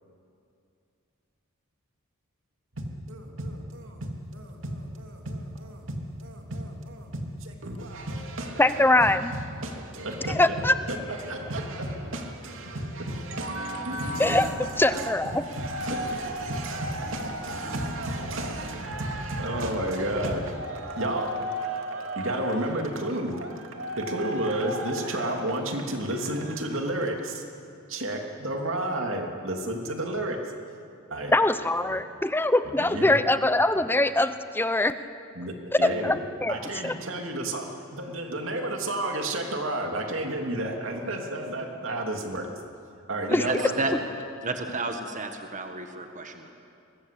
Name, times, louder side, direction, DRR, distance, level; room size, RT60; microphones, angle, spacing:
voice 1, 2.7-9.2 9.5-27.4 27.9-30.4 31.1-31.3 32.8-33.2 35.3-36.2 36.5-42.5 43.1-44.0, right 1 dB, 65° right, 3 dB, 2.8 m, -31 dB
voice 2, 8.6-9.3 10.4-10.7 14.2-14.5 14.8-15.4 31.3-35.0 35.8-36.5 36.8-36.9 43.3-43.5, left 2 dB, 10° left, 11 dB, 0.7 m, -22 dB
voice 3, 43.3-43.9 44.4-46.5, right 3 dB, 35° right, 5 dB, 1.5 m, -32 dB
23.0 x 20.5 x 8.5 m, 2.5 s
head